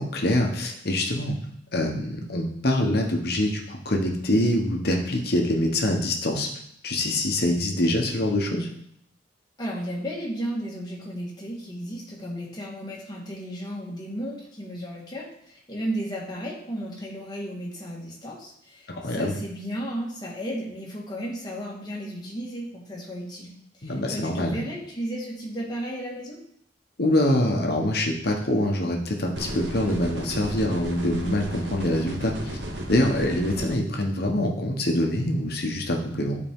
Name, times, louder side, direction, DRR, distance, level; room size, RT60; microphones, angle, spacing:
voice 1, 0.0-1.4 1.7-6.5 6.8-8.7 18.9-19.3 23.8-24.6 27.0-32.3 32.9-36.4, left 1 dB, 60° left, 2 dB, 1.1 m, -24 dB
voice 2, 9.6-26.4, equal, 25° left, -4 dB, 1.7 m, -34 dB
sound 1, 29.4-33.8, right 1 dB, 70° right, 1.1 m, -33 dB
9.7 x 4.4 x 3.7 m, 0.70 s
head